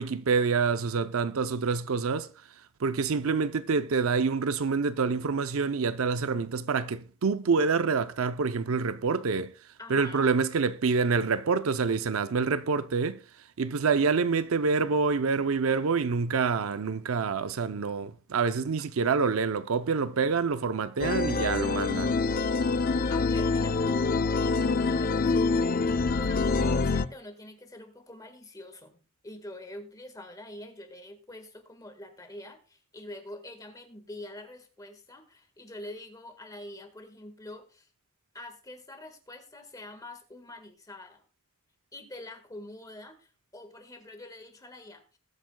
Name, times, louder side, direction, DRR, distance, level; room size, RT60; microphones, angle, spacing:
voice 1, 0.0-2.3 2.8-9.5 9.9-13.2 13.6-22.2, right 5 dB, 65° right, 0.5 m, -27 dB
voice 2, 9.8-10.3 23.1-25.5 26.2-37.9 38.3-41.2 41.9-45.2, left 1 dB, 15° left, 1.5 m, -45 dB
sound 1, 21.0-27.0, left 4 dB, 40° left, 0.4 m, -26 dB
20.0 x 8.3 x 2.2 m
head